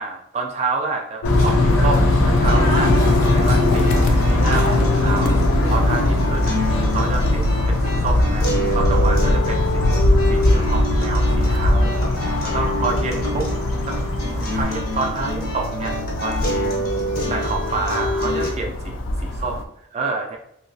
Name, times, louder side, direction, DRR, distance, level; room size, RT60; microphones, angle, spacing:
voice 1, 0.0-4.0 4.3-6.6 6.9-8.5 8.7-12.0 12.4-13.5 13.8-14.1 14.5-15.9 16.2-16.5 17.3-19.6 19.9-20.4, right 3 dB, 30° right, 1 dB, 0.4 m, -28 dB
Bird / Train, 1.2-14.6, left 2 dB, 90° left, 0.7 m, -24 dB
sound 1, 1.2-19.6, left 1 dB, 65° left, 0.3 m, -21 dB
sound 2, 2.5-18.5, left 1 dB, 45° left, 0.8 m, -27 dB
2.9 x 2.8 x 2.7 m, 0.74 s
head